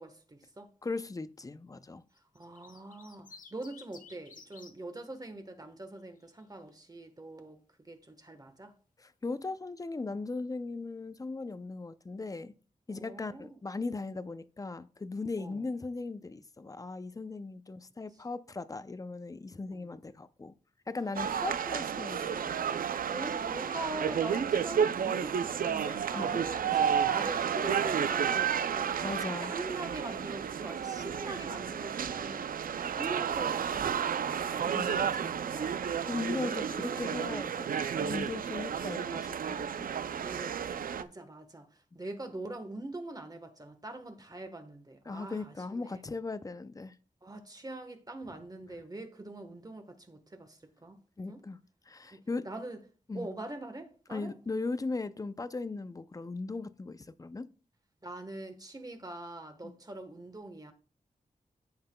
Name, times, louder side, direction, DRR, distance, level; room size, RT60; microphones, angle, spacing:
voice 1, 0.0-0.7 2.3-8.7 12.9-13.6 15.4-15.6 19.7-19.9 21.0-21.4 23.1-29.0 29.4-32.5 32.9-35.9 36.4-37.3 40.2-46.0 47.2-51.0 51.3-51.4 52.4-52.8 53.1-54.3 58.0-60.7, right 2 dB, 25° right, 1.2 m, -43 dB
voice 2, 0.8-2.0 9.0-12.5 12.9-20.5 20.9-22.7 26.1-26.4 29.0-29.5 34.7-35.3 36.1-39.9 45.1-47.0 51.2-51.6 51.9-52.5 53.1-53.3 54.1-57.5 59.6-59.7, left 3 dB, 25° left, 0.5 m, -38 dB
sound 1, 2.2-4.7 6.0-6.4, left 5 dB, 70° left, 1.0 m, -53 dB
sound 2, 21.1-41.0, right 8 dB, 85° right, 0.4 m, -32 dB
14.5 x 5.7 x 2.2 m
wide cardioid pair, 95°, 14 cm